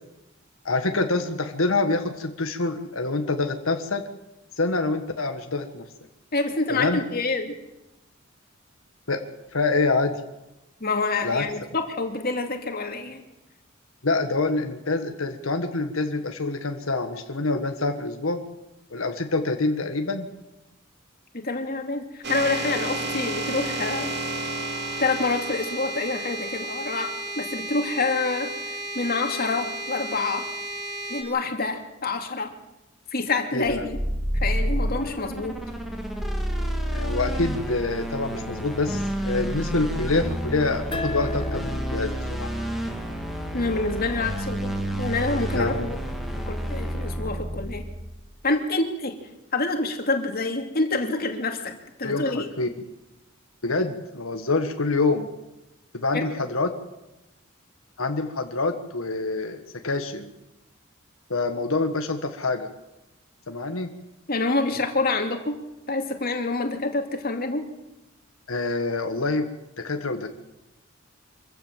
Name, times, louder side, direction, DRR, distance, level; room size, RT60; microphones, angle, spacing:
voice 1, 0.6-4.0 4.6-5.8 6.7-7.0 9.1-9.2 9.5-10.2 11.2-11.6 14.0-18.4 18.9-20.3 33.5-33.9 36.9-42.1 42.4-42.5 45.5-45.9 52.0-52.7 53.6-55.3 55.9-56.7 58.0-60.3 61.3-62.7 63.5-63.9 68.5-69.5 69.8-70.3, left 3 dB, 85° left, 5 dB, 1.6 m, -26 dB
voice 2, 6.3-7.5 10.8-13.2 21.3-24.1 25.0-28.5 28.9-30.5 31.1-32.5 33.1-34.0 34.4-35.6 43.5-46.0 46.5-47.8 48.4-49.2 49.5-51.7 52.0-52.5 56.1-56.2 64.3-65.6 65.9-67.7, left 3 dB, 50° left, 4 dB, 2.7 m, -27 dB
sound 1, 22.2-31.2, right 2 dB, 55° right, 3.6 m, -32 dB
sound 2, 33.6-48.2, equal, ahead, 2.7 m, -29 dB
sound 3, 40.9-44.1, left 3 dB, 25° left, 0.9 m, -37 dB
25.0 x 15.5 x 7.5 m, 0.98 s
head